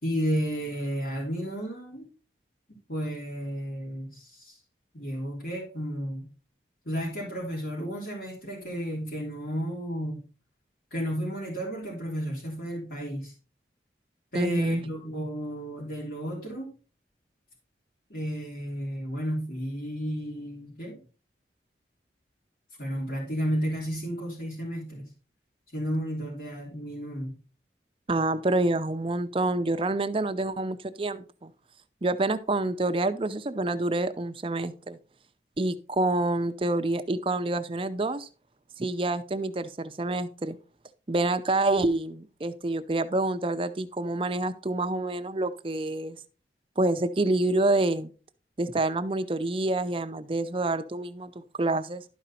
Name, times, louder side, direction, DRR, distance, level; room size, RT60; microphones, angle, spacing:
voice 1, 0.0-2.1 2.9-4.6 4.9-6.3 6.9-10.2 10.9-13.3 14.3-16.7 18.1-21.0 22.8-25.1 25.7-27.3, equal, 60° left, -8 dB, 3.5 m, -32 dB
voice 2, 14.3-14.8 28.1-31.5 32.0-35.0 35.6-38.3 38.8-40.6 41.1-46.2 46.8-48.1 48.6-52.0, right 2 dB, 30° right, 11 dB, 0.5 m, -27 dB
12.0 x 5.1 x 4.2 m, 0.36 s
head